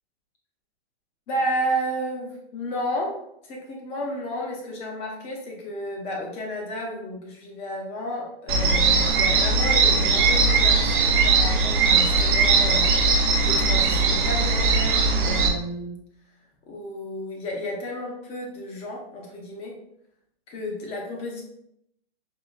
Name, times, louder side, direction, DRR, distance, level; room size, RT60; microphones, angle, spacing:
voice 1, 1.3-16.0 16.7-19.8 20.5-21.4, equal, 20° left, 0 dB, 0.6 m, -32 dB
sound 1, 8.5-15.5, right 4 dB, 55° right, 0.7 m, -20 dB
4.6 x 2.9 x 2.4 m, 0.76 s
hypercardioid pair, 150°, 31 cm